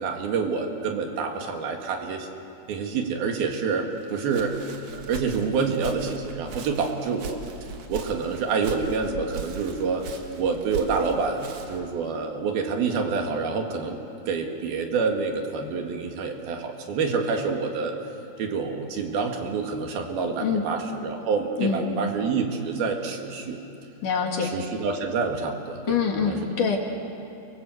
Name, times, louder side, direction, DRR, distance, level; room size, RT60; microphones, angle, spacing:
voice 1, 0.0-2.3 2.7-4.5 4.9-7.4 7.9-10.1 10.4-14.0 14.3-17.9 18.4-23.6 24.4-26.5, right 5 dB, 70° right, 3 dB, 3.9 m, -27 dB
Walk footsteps, 4.0-11.9, right 4 dB, 55° right, 2.9 m, -39 dB
voice 2, 24.0-24.5 25.9-26.8, left 6 dB, 60° left, 2 dB, 3.4 m, -24 dB
30.0 x 24.0 x 8.0 m, 2.7 s
omnidirectional pair, 4.5 m